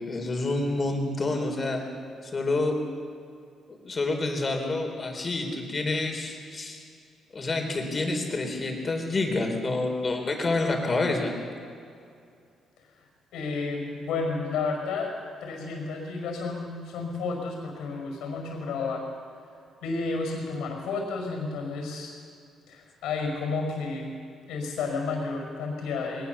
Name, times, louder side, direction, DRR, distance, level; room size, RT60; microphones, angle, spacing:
voice 1, 0.1-1.8 2.2-2.7 3.7-6.8 7.3-11.3, left 2 dB, 35° left, 3 dB, 4.2 m, -28 dB
voice 2, 13.3-15.1 15.4-19.0 19.8-22.1 22.7-24.1 24.5-26.3, left 4 dB, 90° left, 2 dB, 5.3 m, -31 dB
21.0 x 19.5 x 7.0 m, 2.4 s
cardioid pair, 90°, 0 cm